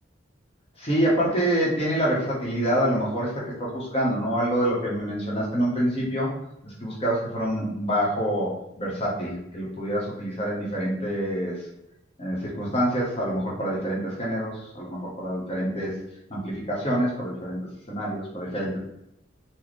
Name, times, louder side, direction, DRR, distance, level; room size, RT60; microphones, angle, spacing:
voice 1, 0.8-6.3 6.6-8.5 8.8-11.6 12.2-15.9 16.3-17.6 17.9-18.8, equal, 30° left, -5 dB, 0.8 m, -26 dB
4.0 x 2.0 x 3.0 m, 0.82 s
head